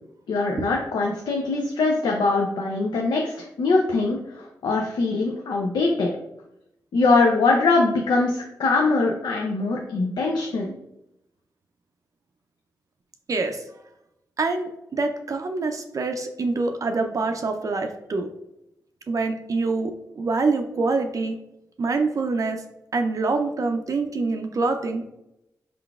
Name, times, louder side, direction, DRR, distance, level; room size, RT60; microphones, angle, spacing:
voice 1, 0.3-6.1 6.9-10.7, left 3 dB, 85° left, 0 dB, 0.5 m, -22 dB
voice 2, 13.3-13.6 14.4-18.3 19.1-21.4 21.8-22.6 22.9-25.0, right 3 dB, 50° right, 5 dB, 0.4 m, -25 dB
4.6 x 3.8 x 2.3 m, 0.84 s
cardioid pair, 70°, 7 cm